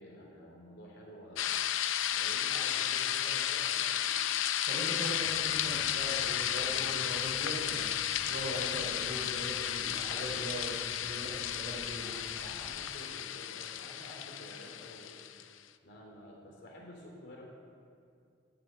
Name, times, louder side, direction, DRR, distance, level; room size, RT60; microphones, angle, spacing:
voice 1, 0.0-1.6 2.1-4.1 12.0-15.2 15.8-17.4, equal, 65° left, -2 dB, 3.4 m, -50 dB
sound 1, 1.4-15.4, left 11 dB, 80° left, 0.5 m, -33 dB
voice 2, 4.7-7.9 8.3-12.3, right 1 dB, 50° right, -3 dB, 3.1 m, -40 dB
sound 2, 5.2-12.8, equal, 10° right, 1.2 m, -55 dB
11.5 x 7.7 x 8.9 m, 2.3 s
head